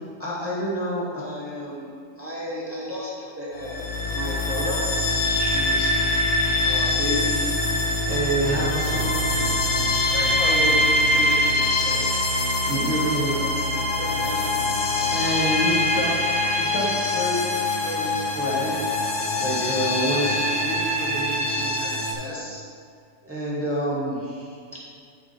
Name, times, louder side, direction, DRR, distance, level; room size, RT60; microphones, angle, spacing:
voice 1, 0.2-1.9 2.2-5.9 6.6-7.4 8.0-9.7 10.1-12.1 12.4-16.1 16.5-18.9 19.4-22.6 23.2-24.9, equal, 10° right, -7 dB, 1.7 m, -30 dB
sound 1, 3.6-22.1, left 2 dB, 50° left, 1.1 m, -23 dB
9.7 x 4.4 x 4.5 m, 2.3 s
omnidirectional pair, 1.8 m